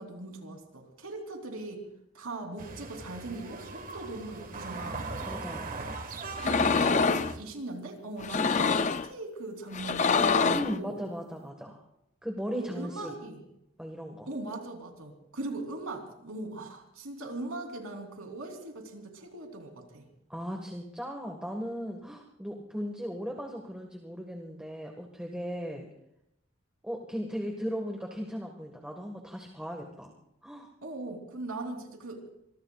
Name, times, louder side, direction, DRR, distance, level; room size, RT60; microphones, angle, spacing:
voice 1, 0.0-1.8 2.1-5.1 6.4-11.0 12.5-13.4 14.3-20.1 30.8-32.2, right 2 dB, 85° right, 2 dB, 3.4 m, -40 dB
sound 1, 2.6-7.4, right 3 dB, 40° right, 1.7 m, -39 dB
voice 2, 5.2-5.7 10.5-11.8 12.2-13.1 13.8-14.3 20.3-25.9 26.8-30.2 30.4-30.7, equal, 5° right, 1 dB, 1.6 m, -37 dB
sound 2, 6.4-7.3 8.2-9.1 9.7-10.8, left 5 dB, 35° left, 0.5 m, -25 dB
25.5 x 23.5 x 2.4 m, 0.82 s
head